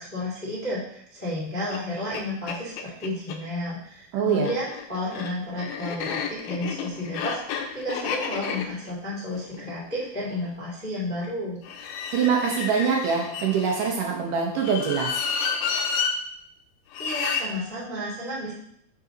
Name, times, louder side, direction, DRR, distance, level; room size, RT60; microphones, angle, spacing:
voice 1, 0.0-11.6 17.0-18.5, left 1 dB, 5° left, -8 dB, 1.1 m, -32 dB
sound 1, 1.7-1.8 2.1-2.2 2.5-3.4 4.3-10.5 11.6-13.9 14.6-16.1 16.9-17.5, left 6 dB, 80° left, 2.2 m, -31 dB
voice 2, 4.1-4.5 12.1-15.2, right 6 dB, 75° right, 0 dB, 1.9 m, -24 dB
5.9 x 5.4 x 3.9 m, 0.72 s
omnidirectional pair, 4.7 m